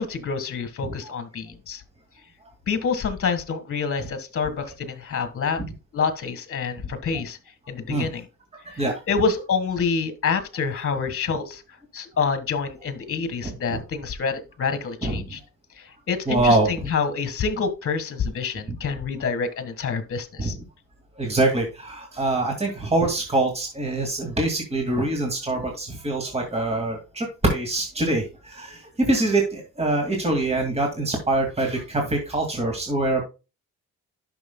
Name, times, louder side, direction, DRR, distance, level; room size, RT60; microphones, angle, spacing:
voice 1, 0.0-1.8 2.7-5.6 5.9-7.4 7.7-8.3 8.7-11.6 11.9-15.4 15.8-20.6, left 5 dB, 45° left, 11 dB, 1.5 m, -27 dB
voice 2, 13.4-13.8 15.0-15.2 16.3-16.9 20.4-20.5 21.2-33.2, right 2 dB, 20° right, 2 dB, 2.2 m, -24 dB
11.0 x 6.2 x 2.2 m, 0.29 s
cardioid pair, 90°, 30 cm